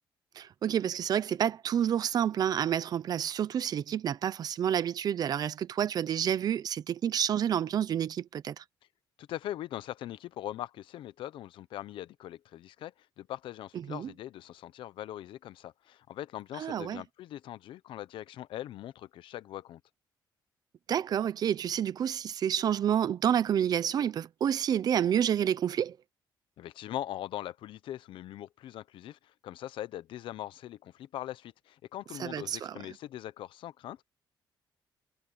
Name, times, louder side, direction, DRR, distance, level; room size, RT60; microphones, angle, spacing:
voice 1, 0.4-8.6 13.9-14.1 16.6-17.0 20.9-26.0 32.2-32.8, right 9 dB, 50° right, 0.7 m, -29 dB
voice 2, 9.2-19.8 26.6-34.0, left 13 dB, 75° left, 0.8 m, -41 dB
cardioid pair, 150°, 9 cm